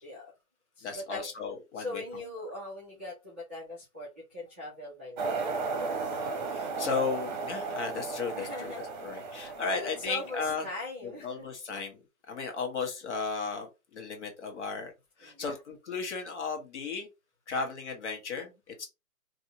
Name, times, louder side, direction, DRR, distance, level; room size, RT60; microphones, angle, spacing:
voice 1, 0.0-0.3 0.8-1.3 1.7-5.4 5.7-6.2 8.4-8.9 9.2-11.5 15.2-15.6, left 1 dB, 10° right, -9 dB, 0.4 m, -41 dB
voice 2, 0.8-2.0 6.5-8.7 9.0-10.6 11.2-12.0 12.3-14.9 15.2-17.1 17.5-18.5 18.8-18.9, left 4 dB, 55° left, 3 dB, 1.7 m, -35 dB
sound 1, 5.2-10.7, right 4 dB, 35° right, 0.9 m, -35 dB
4.1 x 2.8 x 2.8 m, 0.25 s
hypercardioid pair, 150°, 42 cm